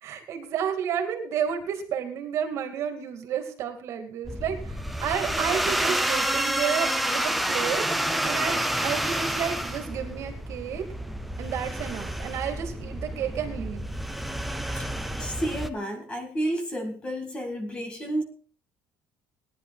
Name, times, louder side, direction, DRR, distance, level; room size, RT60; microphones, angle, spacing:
voice 1, 0.0-7.9 8.2-10.8 11.4-13.9, right 8 dB, 45° right, 6 dB, 2.4 m, -31 dB
sound 1, 4.2-15.7, right 1 dB, ahead, 0.7 m, -29 dB
voice 2, 15.2-18.2, right 1 dB, 15° left, 6 dB, 2.0 m, -31 dB
18.0 x 10.5 x 4.2 m, 0.43 s
cardioid pair, 180°, 7 cm